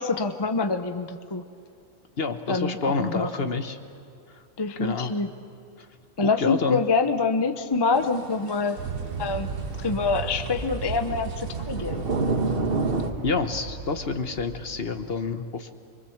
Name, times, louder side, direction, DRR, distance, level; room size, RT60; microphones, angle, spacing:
voice 1, 0.0-1.4 2.5-3.5 4.6-5.3 6.2-8.8 9.2-9.5 9.8-12.0, left 4 dB, 25° left, 8 dB, 0.7 m, -26 dB
voice 2, 2.2-3.8 4.8-5.1 6.2-6.8 13.2-15.7, left 4 dB, 50° left, 8 dB, 1.2 m, -28 dB
sound 1, 7.9-13.1, right 3 dB, 45° right, 1.6 m, -30 dB
Aircraft, 8.8-15.1, right 5 dB, 85° right, 1.6 m, -35 dB
25.0 x 23.0 x 7.2 m, 2.4 s
omnidirectional pair, 1.4 m